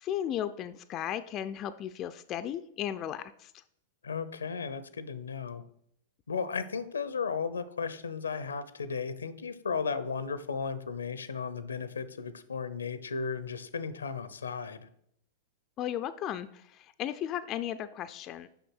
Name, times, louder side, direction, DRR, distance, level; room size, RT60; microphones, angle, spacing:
voice 1, 0.0-3.6 15.8-18.5, left 10 dB, 35° left, 11 dB, 0.5 m, -35 dB
voice 2, 4.0-5.6 6.3-14.9, left 5 dB, 80° left, 14 dB, 0.7 m, -35 dB
6.9 x 5.7 x 6.4 m, 0.71 s
figure-of-eight pair, 100°, 0 cm